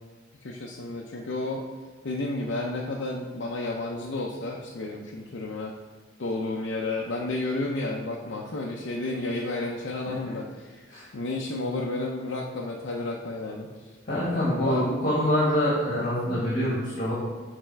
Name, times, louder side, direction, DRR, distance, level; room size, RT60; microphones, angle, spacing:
voice 1, 0.4-1.7 2.0-5.8 6.2-10.9 11.1-13.9 14.5-14.9 16.2-16.5, left 2 dB, 70° left, -2 dB, 0.6 m, -31 dB
voice 2, 14.0-17.1, equal, 45° left, -8 dB, 1.6 m, -25 dB
6.8 x 4.3 x 4.5 m, 1.3 s
head